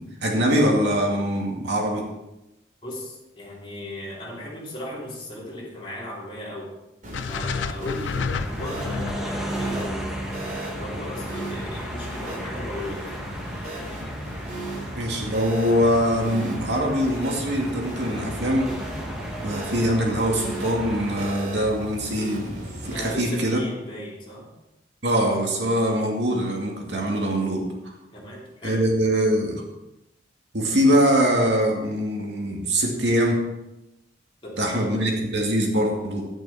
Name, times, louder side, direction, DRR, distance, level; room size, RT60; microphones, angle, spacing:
voice 1, 0.0-2.1 15.0-18.7 19.4-23.6 25.0-28.0 28.6-29.6 30.5-33.4 34.6-36.3, equal, 70° right, 0 dB, 2.3 m, -23 dB
voice 2, 2.8-6.8 7.3-13.2 22.9-24.5 28.1-28.8 34.4-35.1, left 1 dB, 30° left, -5 dB, 3.4 m, -36 dB
sound 1, 7.0-23.1, right 1 dB, 45° right, 3.5 m, -36 dB
sound 2, 7.1-11.3, left 5 dB, 85° left, 0.5 m, -32 dB
sound 3, 8.3-21.3, equal, 5° right, 1.2 m, -35 dB
11.0 x 9.3 x 4.3 m, 0.95 s
head